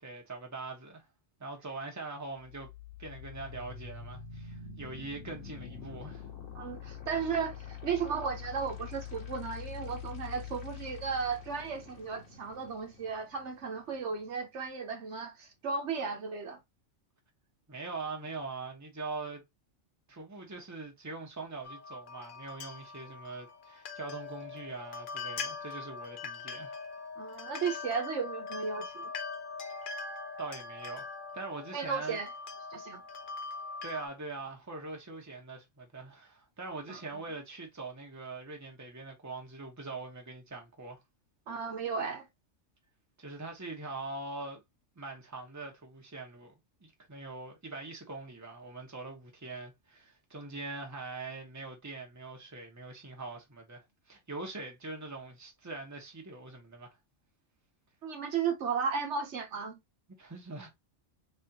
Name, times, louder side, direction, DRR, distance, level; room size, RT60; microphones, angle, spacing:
voice 1, 0.0-1.0 1.4-2.7 3.0-6.3 17.7-19.4 20.1-26.7 30.4-32.2 33.8-41.0 43.2-44.6 45.0-46.5 46.8-57.0 60.2-60.7, right 3 dB, 15° right, 1.0 m, -42 dB
sound 1, 2.4-14.4, left 8 dB, 75° left, 1.4 m, -45 dB
voice 2, 6.5-16.6 27.2-29.1 31.7-32.3 32.7-33.0 36.9-37.2 41.5-42.3 58.0-59.8, right 6 dB, 65° right, 1.2 m, -35 dB
sound 2, 21.6-34.1, left 4 dB, 50° left, 0.8 m, -42 dB
3.5 x 3.4 x 2.8 m
omnidirectional pair, 1.3 m